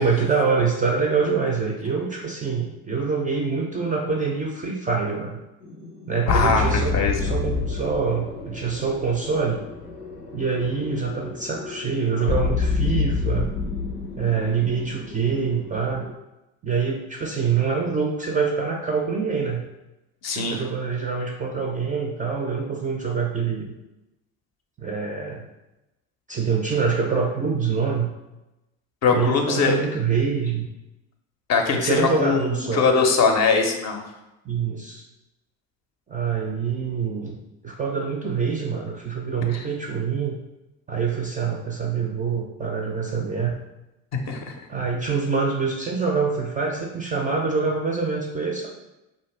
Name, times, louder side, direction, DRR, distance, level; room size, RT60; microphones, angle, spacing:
voice 1, 0.0-5.4 6.1-9.6 10.3-13.5 14.2-16.1 16.6-19.7 20.3-23.7 24.8-25.5 26.3-28.1 29.1-30.7 31.7-32.9 34.5-35.0 36.1-37.4 37.6-40.4 40.9-43.6 44.7-48.7, right 5 dB, 20° right, -1 dB, 0.3 m, -25 dB
sound 1, 5.6-16.1, left 4 dB, 90° left, 0.6 m, -28 dB
voice 2, 6.3-7.3 20.2-20.6 29.0-29.8 31.5-34.0 39.5-39.6 44.1-44.6, left 5 dB, 40° left, 3 dB, 0.5 m, -21 dB
2.5 x 2.1 x 3.1 m, 0.95 s
hypercardioid pair, 65°, 42 cm